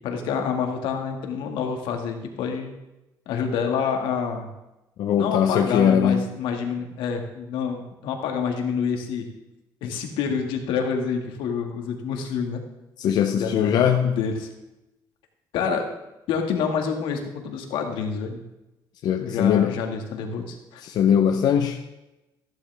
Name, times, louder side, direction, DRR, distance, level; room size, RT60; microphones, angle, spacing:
voice 1, 0.0-2.7 3.3-4.5 5.2-9.3 9.8-12.6 13.3-14.5 15.5-15.9 16.3-18.4 19.2-20.8, left 6 dB, 85° left, 3 dB, 2.1 m, -27 dB
voice 2, 5.0-6.3 13.0-14.2 19.0-19.8 20.8-21.8, left 8 dB, 55° left, 4 dB, 0.8 m, -20 dB
15.0 x 11.5 x 3.5 m, 0.96 s
cardioid pair, 175°, 8 cm